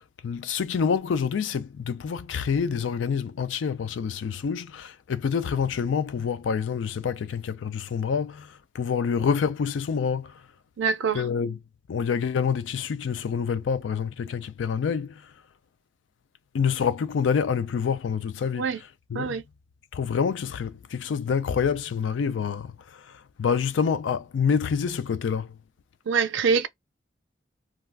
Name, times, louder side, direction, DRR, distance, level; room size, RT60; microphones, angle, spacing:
voice 1, 0.0-10.4 11.1-11.6 11.9-15.3 16.5-19.4 19.9-25.6, left 6 dB, 90° left, 0.4 m, -27 dB
voice 2, 10.8-11.2 18.6-18.8 19.1-19.4 26.1-26.7, right 5 dB, 90° right, 0.5 m, -24 dB
2.3 x 2.3 x 3.4 m
head